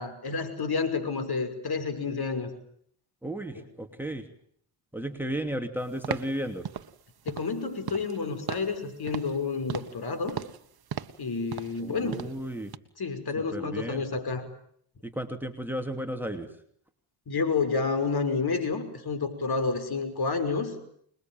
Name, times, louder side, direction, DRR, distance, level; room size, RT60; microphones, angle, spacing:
voice 1, 0.0-2.5 3.6-3.7 7.3-10.4 11.2-12.2 13.0-14.4 17.3-20.7, left 4 dB, 45° left, 10 dB, 5.8 m, -29 dB
voice 2, 3.2-4.2 4.9-6.7 11.8-12.7 13.4-14.0 15.0-16.5, right 1 dB, 5° right, 7 dB, 2.9 m, -34 dB
sound 1, 6.0-6.4 6.6-6.9 7.3-7.6 7.9-8.2 8.5-8.8 9.1-9.4 9.7-10.0 10.3-10.6 10.9-11.2 11.5-11.8 12.1-12.4 12.7-12.8, right 8 dB, 45° right, 1.6 m, -36 dB
27.0 x 22.0 x 9.3 m, 0.68 s
cardioid pair, 100°, 50 cm